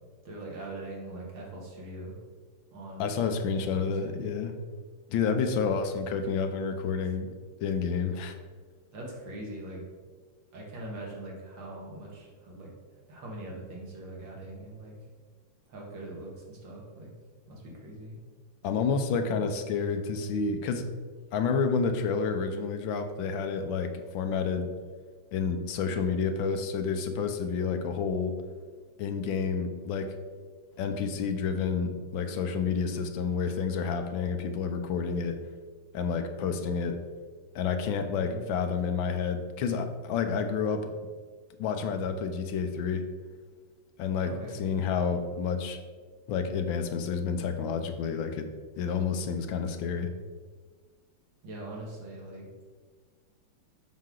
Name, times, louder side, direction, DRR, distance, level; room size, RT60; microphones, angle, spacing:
voice 1, 0.2-2.2 2.7-3.1 3.8-4.1 5.5-5.8 8.9-9.8 10.5-15.0 15.7-17.1 17.5-18.2 38.1-38.4 44.2-44.6 51.4-52.5, right 1 dB, 70° right, -3 dB, 2.4 m, -42 dB
voice 2, 3.0-4.6 5.1-7.3 7.6-8.4 18.6-20.9 21.3-24.7 25.3-28.3 29.0-30.1 30.8-35.4 35.9-37.0 37.5-40.9 41.6-43.1 44.0-44.3 44.6-45.8 46.3-48.5 48.8-50.1, left 5 dB, 80° left, 7 dB, 1.5 m, -29 dB
7.5 x 6.1 x 3.8 m, 1.5 s
omnidirectional pair, 2.1 m